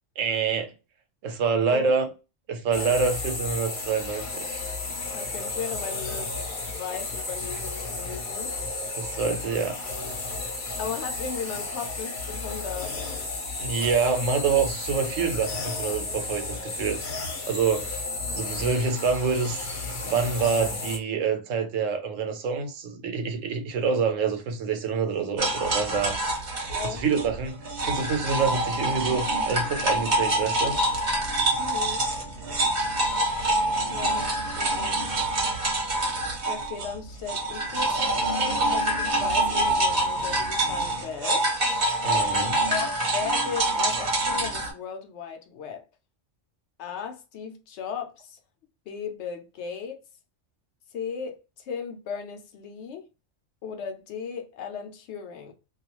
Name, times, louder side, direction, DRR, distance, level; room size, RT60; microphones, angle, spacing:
voice 1, 0.2-0.7 1.2-2.1 2.5-4.6 9.0-9.8 13.6-17.0 17.5-18.0 18.3-19.6 20.0-26.2 26.8-30.8 42.0-42.6, right 5 dB, 90° right, 1.1 m, -26 dB
sound 1, 2.7-21.0, left 3 dB, 45° left, 0.8 m, -33 dB
voice 2, 5.1-6.3 6.7-8.5 10.8-13.1 26.7-27.0 31.6-32.0 33.9-35.1 36.5-41.5 42.7-42.9 43.1-45.8 46.8-48.4 48.9-50.0 50.9-53.0 53.6-55.5, left 6 dB, 70° left, 0.8 m, -36 dB
sound 2, 25.4-37.0 37.3-44.7, right 1 dB, 45° right, 0.9 m, -26 dB
2.4 x 2.3 x 2.9 m
omnidirectional pair, 1.3 m